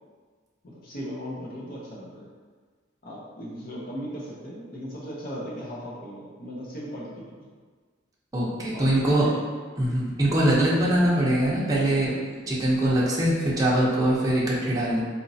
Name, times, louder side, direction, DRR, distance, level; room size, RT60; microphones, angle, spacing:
voice 1, 0.6-2.3 3.0-7.5 8.7-9.4, equal, 45° left, -4 dB, 0.7 m, -37 dB
voice 2, 8.3-9.3 9.8-15.0, right 1 dB, 20° right, -7 dB, 0.6 m, -23 dB
4.2 x 2.9 x 2.7 m, 1.5 s
head